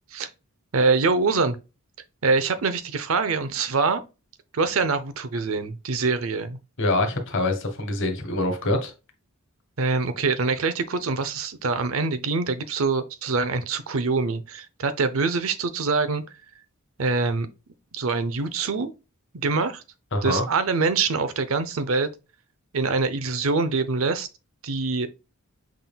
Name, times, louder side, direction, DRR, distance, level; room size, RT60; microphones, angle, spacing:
voice 1, 0.7-1.6 2.2-4.0 4.5-6.6 9.8-16.2 17.0-17.5 17.9-18.9 19.3-19.8 20.2-22.1 22.7-24.3 24.6-25.1, right 4 dB, 70° right, 0.6 m, -24 dB
voice 2, 6.8-8.9 20.1-20.4, left 2 dB, 60° left, 1.2 m, -24 dB
5.8 x 3.7 x 2.3 m
head